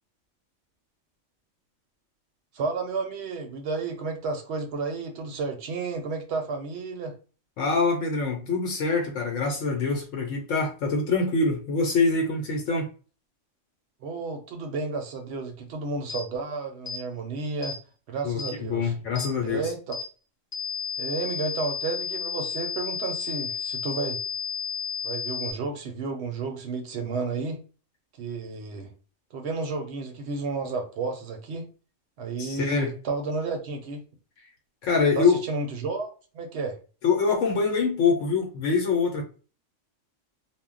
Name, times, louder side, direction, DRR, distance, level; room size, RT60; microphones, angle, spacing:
voice 1, 2.5-7.1 14.0-17.8 18.1-18.9 19.4-20.0 21.0-24.2 25.0-27.6 28.2-28.9 29.3-31.7 32.2-34.0 35.2-36.8, right 4 dB, 65° right, 0.8 m, -32 dB
voice 2, 7.6-12.9 18.2-19.6 32.4-32.9 34.8-35.4 37.0-39.2, left 4 dB, 80° left, 1.0 m, -24 dB
sound 1, 16.1-16.2 16.9-17.0 17.6-17.8 18.4-18.5 19.1-19.3 19.9-20.1 20.5-25.5, left 7 dB, 15° left, 0.7 m, -32 dB
2.2 x 2.1 x 3.6 m
omnidirectional pair, 1.3 m